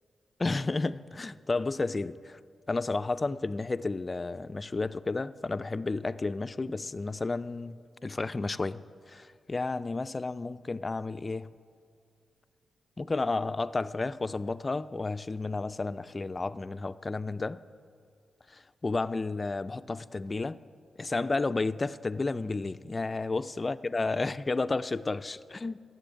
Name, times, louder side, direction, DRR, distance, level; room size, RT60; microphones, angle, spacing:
voice 1, 0.4-2.4 2.7-11.5 13.0-17.6 18.5-20.6 21.0-25.8, left 3 dB, 35° left, 0.4 m, -32 dB
13.5 x 7.1 x 9.0 m
cardioid pair, 70°, 0 cm